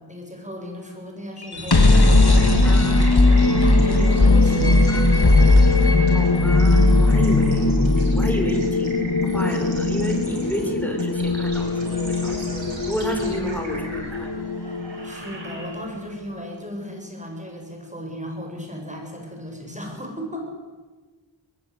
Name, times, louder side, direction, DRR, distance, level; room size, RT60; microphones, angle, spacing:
voice 1, 0.0-3.2 3.6-4.9 14.8-20.5, equal, 15° right, 2 dB, 7.8 m, -35 dB
sound 1, 1.4-15.3, left 2 dB, 55° left, 2.9 m, -18 dB
sound 2, 1.5-16.1, right 2 dB, 90° right, 7.1 m, -39 dB
voice 2, 2.6-3.1 4.9-5.1 6.1-7.8 8.2-12.6 12.9-14.4, equal, 5° left, 4 dB, 5.8 m, -31 dB
22.0 x 21.5 x 10.0 m, 1.3 s
wide cardioid pair, 50°, 45 cm